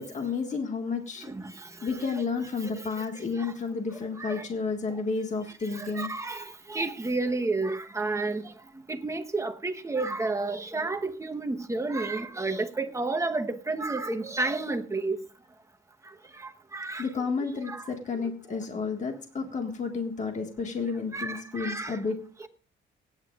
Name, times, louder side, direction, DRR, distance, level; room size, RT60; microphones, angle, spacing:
voice 1, 0.0-1.3 1.8-6.1 17.0-22.2, left 4 dB, 35° left, 1.7 m, -31 dB
voice 2, 2.7-3.5 4.2-4.5 5.7-8.4 8.9-15.2 16.4-17.1 17.7-17.8 21.1-22.0, right 3 dB, 15° right, 1.1 m, -31 dB
24.0 x 9.7 x 2.4 m
cardioid pair, 140°, 20 cm